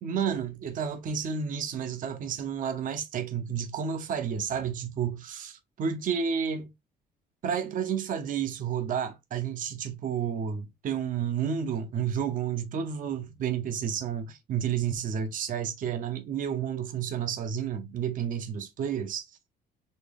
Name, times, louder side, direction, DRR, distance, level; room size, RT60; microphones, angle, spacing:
voice 1, 0.0-6.7 7.4-19.3, right 7 dB, 50° right, 0.8 m, -31 dB
4.2 x 2.3 x 3.3 m
cardioid pair, 110°, 17 cm